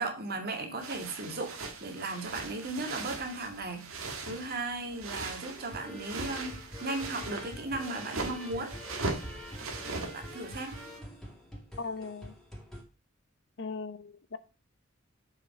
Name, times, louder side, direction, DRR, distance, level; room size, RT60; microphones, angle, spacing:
voice 1, 0.0-8.7 9.8-10.8, right 2 dB, 50° right, 2.0 m, -36 dB
sound 1, 0.8-11.0, right 3 dB, 80° right, 1.7 m, -40 dB
sound 2, 5.4-12.8, equal, ahead, 2.4 m, -46 dB
voice 2, 11.8-12.3 13.6-14.4, left 4 dB, 65° left, 0.8 m, -38 dB
7.1 x 5.7 x 4.5 m
head